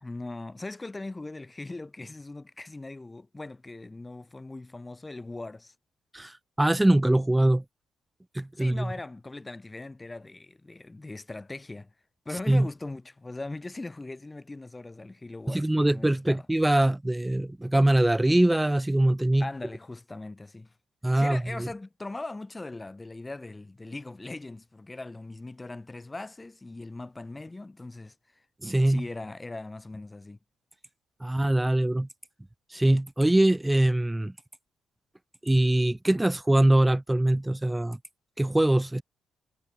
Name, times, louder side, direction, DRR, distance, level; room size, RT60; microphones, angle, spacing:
voice 1, 0.0-5.7 8.6-11.9 12.3-16.5 19.4-20.7 21.1-28.1 28.8-30.4, left 2 dB, 20° left, 1.8 m, -40 dB
voice 2, 6.1-7.6 8.3-8.9 12.5-12.7 15.5-19.5 21.0-21.7 28.6-29.0 31.2-32.1 32.7-34.3 35.4-38.0 38.4-39.0, right 1 dB, 10° right, 1.4 m, -23 dB
hypercardioid pair, 50°, 0 cm